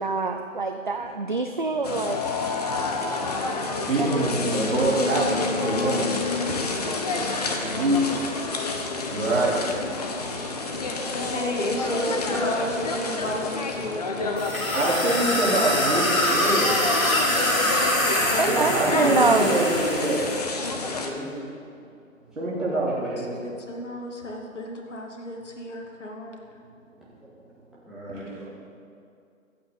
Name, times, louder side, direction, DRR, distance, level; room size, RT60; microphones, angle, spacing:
voice 1, 0.0-2.2 4.0-4.6 7.8-7.9 12.0-12.2 18.4-19.6, right 3 dB, 40° right, 6 dB, 0.4 m, -26 dB
sound 1, 1.8-21.1, left 3 dB, 30° left, 1.0 m, -29 dB
voice 2, 2.4-6.6 7.4-8.3 8.7-11.4 11.8-11.9 12.4-12.5 14.1-16.9 18.5-20.2 22.3-23.3 28.1-28.2, right 1 dB, 65° right, -5 dB, 4.0 m, -27 dB
voice 3, 11.1-14.6 18.0-18.1 23.3-26.4, left 1 dB, 60° left, 1 dB, 2.3 m, -32 dB
sound 2, 14.4-20.3, left 1 dB, 80° left, 2.9 m, -24 dB
voice 4, 18.5-20.3 20.7-21.3 22.6-23.2 23.5-23.6 27.9-28.5, equal, ahead, -10 dB, 2.0 m, -33 dB
24.5 x 8.4 x 4.1 m, 2.4 s
figure-of-eight pair, 145°, 41 cm